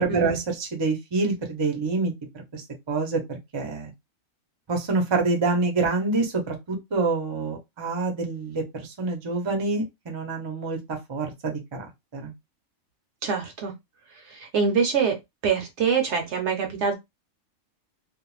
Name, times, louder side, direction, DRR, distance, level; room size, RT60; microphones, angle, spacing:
voice 1, 0.0-3.9 4.7-12.3, right 3 dB, 30° right, 0.5 m, -27 dB
voice 2, 13.2-13.7 14.3-15.2 15.4-16.9, right 6 dB, 65° right, 0.8 m, -24 dB
2.4 x 2.1 x 3.0 m
omnidirectional pair, 1.4 m